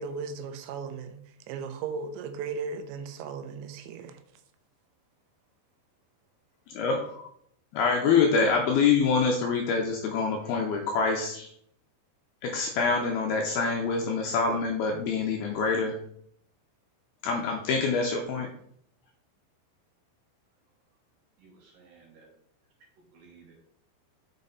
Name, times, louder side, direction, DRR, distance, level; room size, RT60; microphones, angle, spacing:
voice 1, 0.0-4.2, right 5 dB, 85° right, 3.1 m, -36 dB
voice 2, 6.7-7.2 7.7-11.5 12.4-16.0 17.2-18.5, left 5 dB, 85° left, 2.2 m, -25 dB
voice 3, 21.4-22.3 23.1-23.6, right 5 dB, 60° right, 2.7 m, -56 dB
6.6 x 5.4 x 4.0 m
omnidirectional pair, 5.2 m